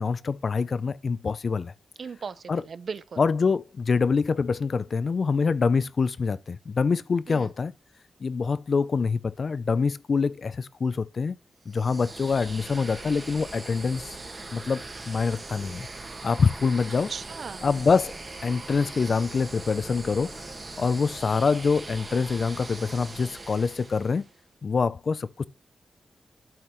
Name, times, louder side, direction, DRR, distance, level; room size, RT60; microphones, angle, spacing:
voice 1, 0.0-1.7 2.5-2.6 3.2-7.7 8.2-11.4 11.7-14.2 14.5-15.9 16.2-17.1 17.6-20.4 20.8-24.2 24.6-25.5, left 5 dB, 45° left, 0.5 m, -25 dB
voice 2, 2.0-3.2 7.3-7.5 17.1-17.7, right 5 dB, 55° right, 0.6 m, -37 dB
sound 1, 11.7-24.3, right 3 dB, 30° right, 1.9 m, -41 dB
12.0 x 5.7 x 3.1 m
wide cardioid pair, 145°, 0 cm